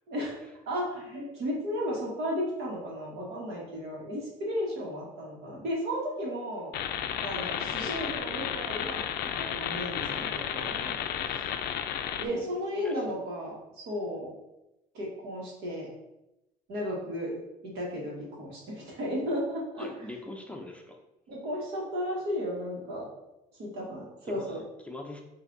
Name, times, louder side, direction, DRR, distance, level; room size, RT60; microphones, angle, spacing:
voice 1, 0.1-6.7 7.2-10.9 11.3-11.5 12.2-14.3 14.9-15.9 16.7-19.9 21.3-23.1 23.5-24.6, equal, 80° right, -3 dB, 1.4 m, -34 dB
sound 1, 6.7-12.3, left 9 dB, 70° left, 0.4 m, -32 dB
voice 2, 12.2-13.0 19.8-21.0 24.3-25.2, left 2 dB, 5° left, 1 dB, 0.5 m, -43 dB
5.6 x 2.7 x 2.6 m, 0.92 s
cardioid pair, 110°, 17 cm